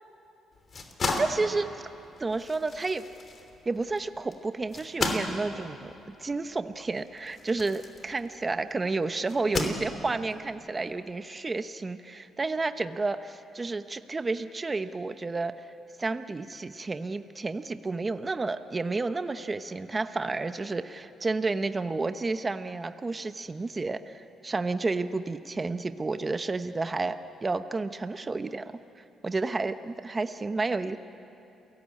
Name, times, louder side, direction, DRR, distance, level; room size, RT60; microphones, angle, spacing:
sound 1, 0.5-8.6 9.3-10.3, left 3 dB, 45° left, 3.0 m, -35 dB
voice 1, 1.2-1.7 2.2-3.0 3.7-5.9 6.2-15.5 16.0-28.7 29.2-31.0, right 3 dB, 25° right, 10 dB, 0.9 m, -31 dB
29.5 x 18.0 x 8.6 m, 2.8 s
cardioid pair, 90°, 0 cm